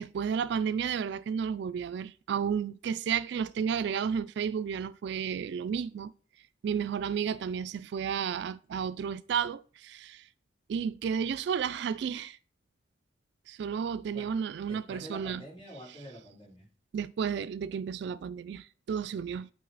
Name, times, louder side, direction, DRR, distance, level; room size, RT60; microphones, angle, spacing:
voice 1, 0.0-6.1 6.6-10.3 10.7-12.4 13.5-15.5 16.0-16.1 16.9-19.5, right 7 dB, 65° right, 0.3 m, -32 dB
voice 2, 14.6-16.7, right 1 dB, 30° left, 3.7 m, -47 dB
8.4 x 4.0 x 4.0 m
head